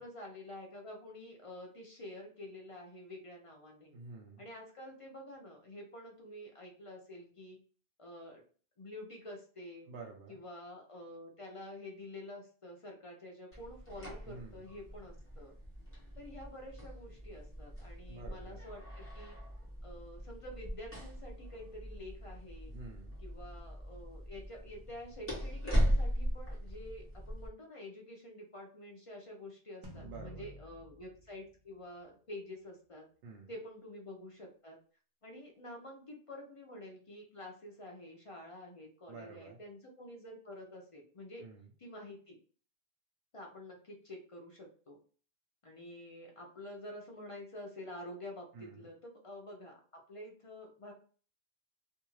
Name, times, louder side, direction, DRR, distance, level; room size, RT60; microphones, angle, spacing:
voice 1, 0.0-3.9 4.4-7.6 8.0-8.4 8.8-9.9 10.3-15.5 16.2-19.4 19.8-22.7 23.2-33.1 33.5-34.8 35.2-41.4 41.8-42.4 43.3-45.0 45.6-50.9, left 1 dB, 50° left, 1 dB, 0.4 m, -48 dB
voice 2, 3.9-4.4 9.9-10.4 14.3-14.7 18.1-18.6 22.7-23.2 30.0-30.5 33.2-33.5 39.1-39.6 41.4-41.7 48.5-48.9, right 4 dB, 65° right, -1 dB, 0.8 m, -50 dB
sound 1, 13.5-27.5, equal, 10° left, 1.0 m, -38 dB
sound 2, 29.8-32.4, equal, 40° right, 0.4 m, -51 dB
2.6 x 2.3 x 3.0 m, 0.41 s
omnidirectional pair, 1.2 m